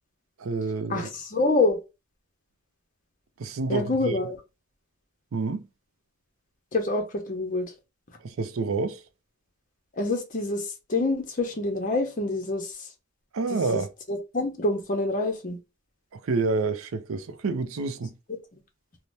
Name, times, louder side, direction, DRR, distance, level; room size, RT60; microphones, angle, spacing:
voice 1, 0.4-1.1 3.4-4.1 5.3-5.6 8.2-9.0 13.3-13.9 16.1-18.1, right 4 dB, 85° right, 0.5 m, -28 dB
voice 2, 0.9-1.8 3.7-4.4 6.7-7.7 9.9-12.9 13.5-13.8 14.1-15.6, left 2 dB, 40° left, 0.8 m, -26 dB
2.7 x 2.1 x 3.2 m
head